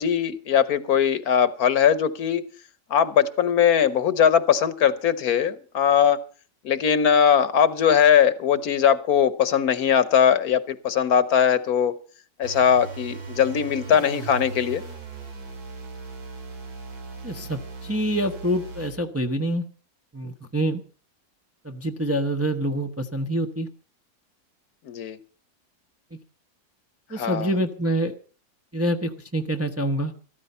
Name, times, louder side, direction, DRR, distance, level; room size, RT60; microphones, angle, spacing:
voice 1, 0.0-2.4 2.9-6.2 6.6-11.9 12.4-14.8 24.9-25.2 27.1-27.5, left 8 dB, 70° left, 15 dB, 1.4 m, -20 dB
sound 1, 12.4-19.0, right 4 dB, 70° right, 2.5 m, -38 dB
voice 2, 17.2-19.6 20.1-20.8 21.6-23.7 27.1-28.2 28.7-30.1, right 1 dB, 10° right, 5 dB, 0.8 m, -26 dB
13.5 x 13.5 x 5.5 m, 0.40 s
omnidirectional pair, 1.7 m